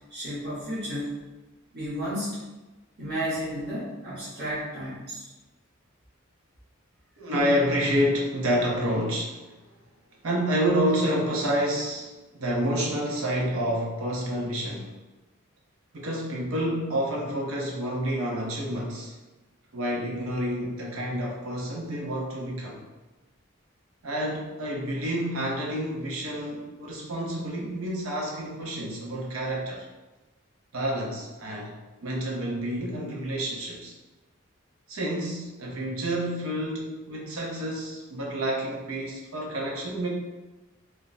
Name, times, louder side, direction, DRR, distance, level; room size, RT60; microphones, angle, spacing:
voice 1, 0.1-1.2 1.7-2.4 3.0-5.3, equal, 50° right, -9 dB, 0.9 m, -32 dB
voice 2, 7.2-9.4 10.2-14.9 15.9-19.1 19.7-22.9 24.0-29.9 30.7-31.7 32.0-33.9 34.9-40.1, equal, 85° right, -2 dB, 0.7 m, -29 dB
2.4 x 2.1 x 3.9 m, 1.1 s
head